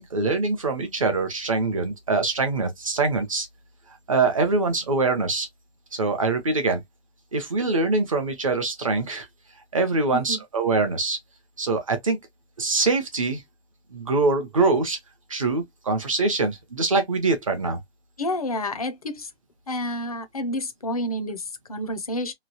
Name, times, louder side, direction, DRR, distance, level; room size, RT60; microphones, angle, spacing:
voice 1, 0.0-3.5 4.1-5.5 5.9-6.8 7.3-9.3 9.7-11.2 11.6-12.2 12.6-13.4 13.9-15.0 15.3-17.8, right 3 dB, 30° right, 0.6 m, -24 dB
voice 2, 10.1-10.4 18.2-19.3 19.7-22.3, left 1 dB, 35° left, 0.4 m, -29 dB
3.0 x 2.3 x 2.7 m
hypercardioid pair, 165°, 33 cm